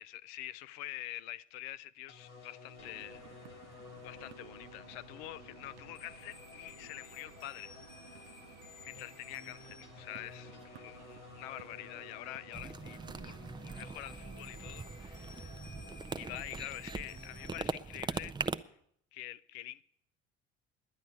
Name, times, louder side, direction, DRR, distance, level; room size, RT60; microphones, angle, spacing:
voice 1, 0.0-3.2 3.7-3.8 4.0-7.8 8.8-15.6 16.2-18.3 19.1-19.8, left 15 dB, 65° left, 0.6 m, -46 dB
sound 1, 2.1-17.6, left 4 dB, 80° left, 2.3 m, -53 dB
sound 2, 2.8-13.9, right 9 dB, 75° right, 0.7 m, -56 dB
sound 3, 12.5-18.6, right 4 dB, 15° right, 0.5 m, -41 dB
10.5 x 10.5 x 8.2 m
figure-of-eight pair, 55°, 34 cm